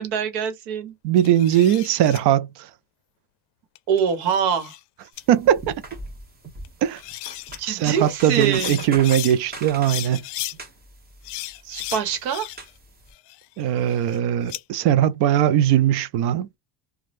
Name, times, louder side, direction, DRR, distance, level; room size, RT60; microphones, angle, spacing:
voice 1, 0.0-0.9 3.9-4.8 7.6-8.8 11.6-12.5, right 7 dB, 85° right, 1.2 m, -24 dB
voice 2, 1.0-2.7 5.3-5.7 6.8-7.0 7.7-10.2 13.6-16.5, right 11 dB, 60° right, 0.5 m, -20 dB
sound 1, 1.2-2.2 3.8-4.8 5.2-5.3 6.6-6.7 7.0-7.6 8.3-9.3 9.8-10.6 11.2-12.8 13.1-14.6, left 17 dB, 60° left, 0.5 m, -35 dB
sound 2, 5.1-13.1, right 1 dB, 20° right, 1.2 m, -41 dB
3.1 x 2.3 x 2.6 m
supercardioid pair, 115°, 47 cm